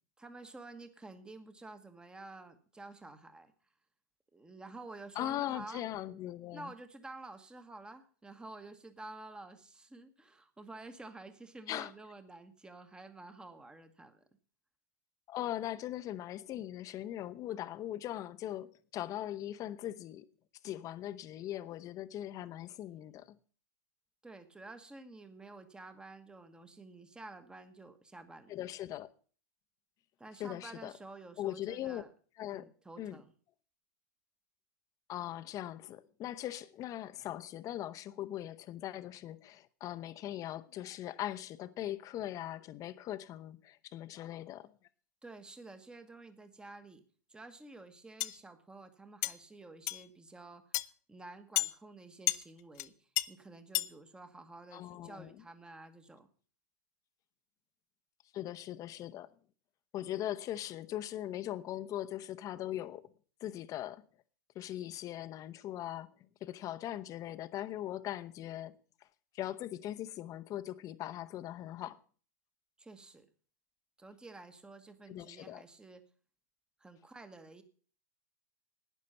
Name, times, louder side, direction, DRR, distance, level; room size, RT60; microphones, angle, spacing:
voice 1, 0.2-3.5 4.3-5.8 6.5-14.2 24.2-28.5 30.2-32.1 32.5-33.3 45.2-47.0 47.3-50.8 51.1-56.3 72.8-73.3 74.0-76.0 76.8-77.6, right 2 dB, 10° right, 1.3 m, -50 dB
voice 2, 5.1-6.7 11.7-11.9 15.3-20.3 20.6-23.4 28.5-29.1 30.4-30.9 31.4-32.0 32.4-32.7 33.0-33.2 35.1-44.7 54.7-55.3 58.3-59.3 59.9-63.1 63.4-64.0 64.5-66.1 66.4-68.7 69.3-72.0 75.1-75.6, left 13 dB, 35° left, 0.9 m, -40 dB
sound 1, 48.2-48.4 49.2-49.4 49.9-50.0 50.7-50.9 51.6-51.7 52.3-52.4 52.8-52.9 53.2-53.3 53.8-53.9, left 18 dB, 55° left, 0.6 m, -31 dB
12.0 x 9.6 x 5.7 m
hypercardioid pair, 115°, 10 cm